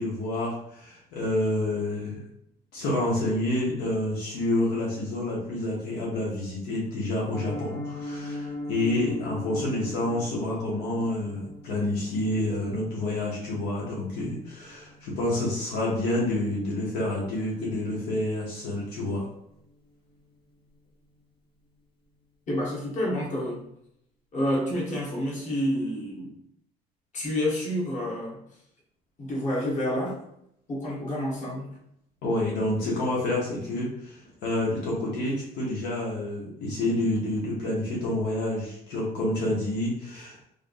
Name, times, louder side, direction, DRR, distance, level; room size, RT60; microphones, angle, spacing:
voice 1, 0.0-2.2 2.7-19.3 32.2-40.4, left 1 dB, 85° left, -5 dB, 0.9 m, -28 dB
Piano, 7.3-18.2 18.5-18.7 19.0-19.2 19.5-19.8 20.1-20.2, left 1 dB, 30° left, 0.7 m, -41 dB
voice 2, 22.5-23.6 24.3-26.4 27.1-28.4 29.2-30.2 30.7-31.7, equal, 45° left, -5 dB, 1.3 m, -29 dB
3.3 x 2.6 x 2.5 m, 0.76 s
cardioid pair, 110°, 17 cm